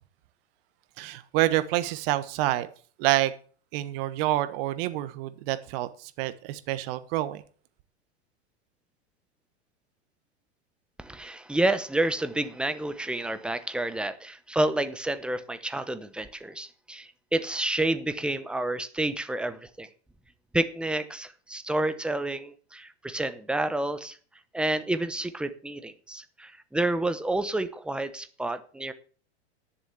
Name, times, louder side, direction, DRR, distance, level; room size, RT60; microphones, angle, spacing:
voice 1, 1.0-2.7 3.0-3.3 3.7-7.4, right 15 dB, 55° right, 1.3 m, -27 dB
voice 2, 11.0-19.9 20.5-24.2 24.5-28.9, right 1 dB, 5° right, 0.8 m, -29 dB
11.0 x 6.9 x 6.9 m
hypercardioid pair, 115°, 34 cm